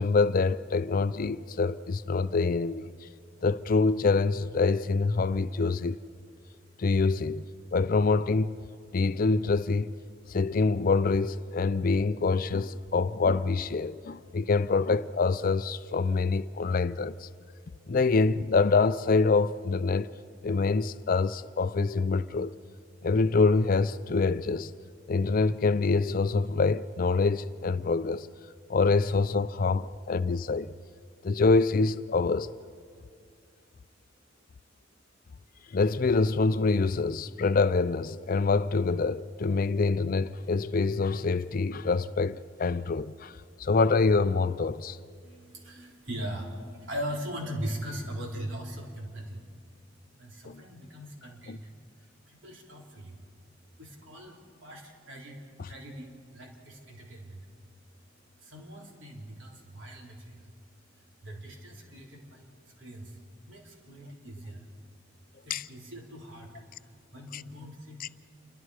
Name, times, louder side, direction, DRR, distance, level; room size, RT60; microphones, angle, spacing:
voice 1, 0.0-3.1 3.4-6.0 6.8-7.5 7.7-8.5 8.9-9.9 10.3-17.3 17.9-20.1 20.4-22.5 23.0-24.7 25.1-28.3 28.7-30.7 31.2-32.5 35.7-45.0 50.5-50.6 51.5-51.6 65.5-65.6 67.3-67.4 68.0-68.1, left 4 dB, 45° left, 0.4 m, -25 dB
voice 2, 45.2-49.6 50.2-51.6 52.0-53.2 53.8-57.5 58.4-60.5 60.9-63.2 63.5-64.7 65.4-68.1, equal, 70° right, 3.7 m, -40 dB
29.0 x 23.5 x 4.9 m
head